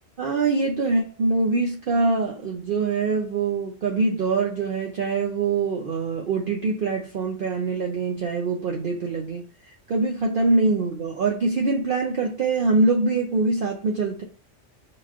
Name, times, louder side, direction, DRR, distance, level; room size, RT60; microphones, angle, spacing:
voice 1, 0.2-9.4 9.9-14.2, right 3 dB, 55° right, 0 dB, 0.6 m, -24 dB
5.9 x 2.9 x 2.4 m, 0.38 s
omnidirectional pair, 1.4 m